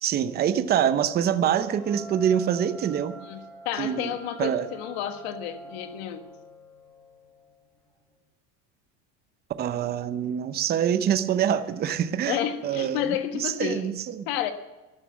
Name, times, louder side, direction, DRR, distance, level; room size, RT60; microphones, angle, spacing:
voice 1, 0.0-3.1 3.8-4.1 4.4-4.7 9.6-12.4 12.6-13.1 13.3-14.3, right 9 dB, 30° right, 11 dB, 0.8 m, -25 dB
sound 1, 0.8-8.2, right 2 dB, 5° left, 3.4 m, -46 dB
voice 2, 3.2-6.3 12.2-13.9 14.3-14.5, left 10 dB, 90° left, 8 dB, 1.6 m, -31 dB
12.5 x 11.0 x 7.1 m, 1.1 s
cardioid pair, 145°, 31 cm